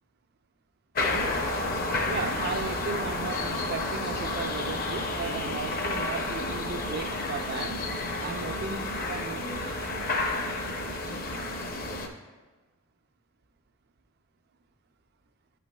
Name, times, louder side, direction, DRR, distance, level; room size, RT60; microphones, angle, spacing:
sound 1, 0.9-12.1, left 2 dB, 45° left, 0.7 m, -31 dB
voice 1, 2.1-7.8 8.2-9.9, right 4 dB, 50° right, 8 dB, 0.3 m, -36 dB
11.0 x 5.7 x 2.3 m, 1.2 s
head